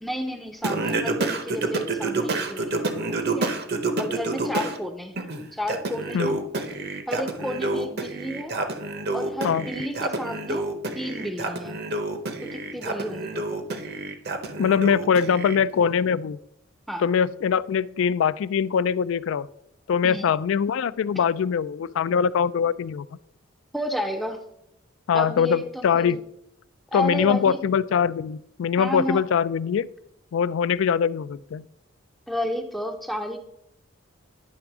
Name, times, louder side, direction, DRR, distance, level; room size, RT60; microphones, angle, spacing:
voice 1, 0.0-2.9 3.3-3.5 4.0-6.4 7.1-8.5 9.1-10.7 10.9-11.8 12.4-13.6 16.9-17.1 20.0-20.3 23.7-24.4 25.1-26.2 26.9-27.6 28.8-29.2 32.3-33.4, equal, ahead, 3 dB, 0.5 m, -31 dB
Singing, 0.6-4.8 5.2-15.6, right 2 dB, 50° right, 0.8 m, -28 dB
voice 2, 14.6-16.4 17.0-19.5 19.9-23.1 25.1-26.2 26.9-29.9 30.3-31.7, left 7 dB, 70° left, 16 dB, 0.3 m, -22 dB
10.0 x 3.5 x 5.9 m, 0.80 s
head